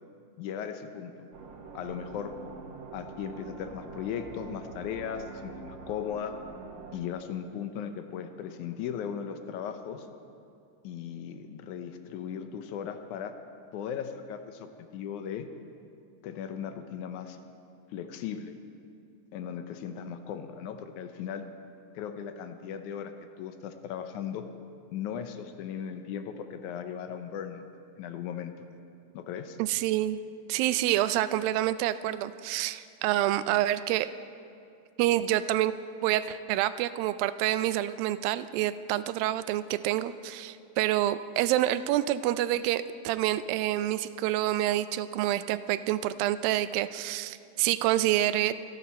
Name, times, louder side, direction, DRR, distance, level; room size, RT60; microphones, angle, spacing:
voice 1, 0.4-1.1 1.7-2.3 2.9-6.4 6.9-10.1 10.8-13.3 13.7-15.5 16.2-17.4 17.9-18.5 19.3-21.5 22.0-23.1 23.4-24.5 24.9-27.7 28.0-28.7 29.1-29.6, left 8 dB, 75° left, 8 dB, 1.9 m, -37 dB
sound 1, 1.3-7.0, right 4 dB, 65° right, 2.0 m, -45 dB
voice 2, 29.6-30.2 30.5-34.1 35.0-35.7 36.0-48.5, right 14 dB, 85° right, 14 dB, 2.3 m, -27 dB
25.0 x 11.5 x 4.3 m, 2.5 s
omnidirectional pair, 4.1 m